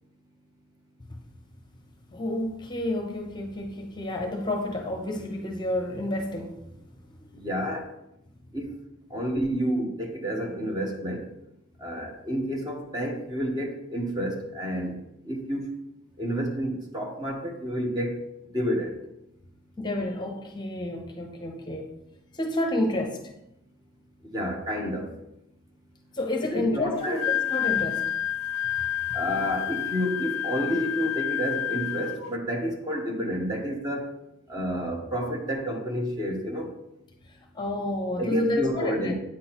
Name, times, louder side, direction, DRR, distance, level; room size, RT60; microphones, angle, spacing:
voice 1, 2.1-6.6 7.3-7.4 19.8-21.9 22.3-23.2 26.1-28.0 37.5-39.1, left 1 dB, 20° left, 0.8 m, -30 dB
voice 2, 7.4-7.9 8.5-8.7 9.1-11.3 11.8-15.0 15.3-15.7 16.2-18.2 18.5-18.9 24.3-25.1 26.5-27.2 29.1-34.1 34.5-36.7 38.2-39.1, equal, 20° right, 1.0 m, -29 dB
Wind instrument woodwind instrument, 27.0-32.3, left 11 dB, 75° left, 0.4 m, -29 dB
8.6 x 6.1 x 3.0 m
head